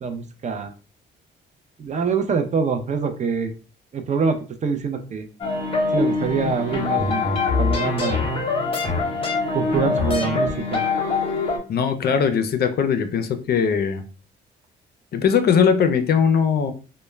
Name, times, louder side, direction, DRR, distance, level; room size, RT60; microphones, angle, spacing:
voice 1, 0.0-0.7 1.8-3.5 3.9-5.3 5.9-7.3 7.6-8.2 9.5-10.8, right 5 dB, 35° right, 7 dB, 0.4 m, -25 dB
sound 1, 5.4-11.6, left 4 dB, 25° left, 0.8 m, -23 dB
voice 2, 11.7-14.0 15.1-16.7, left 7 dB, 50° left, 8 dB, 0.4 m, -20 dB
2.2 x 2.1 x 3.1 m, 0.37 s
cardioid pair, 90°, 20 cm